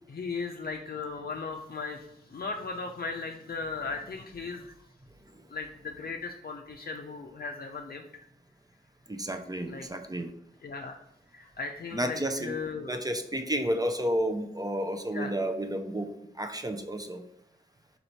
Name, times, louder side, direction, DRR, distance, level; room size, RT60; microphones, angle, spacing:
voice 1, 0.1-4.7 5.5-8.0 9.7-9.9 10.6-11.0 11.3-13.0 15.1-15.3, left 4 dB, 50° left, 3 dB, 0.5 m, -37 dB
voice 2, 9.1-10.3 11.9-12.5 12.9-17.2, equal, 20° right, 6 dB, 0.6 m, -31 dB
4.3 x 2.6 x 4.4 m, 0.78 s
cardioid pair, 45°, 19 cm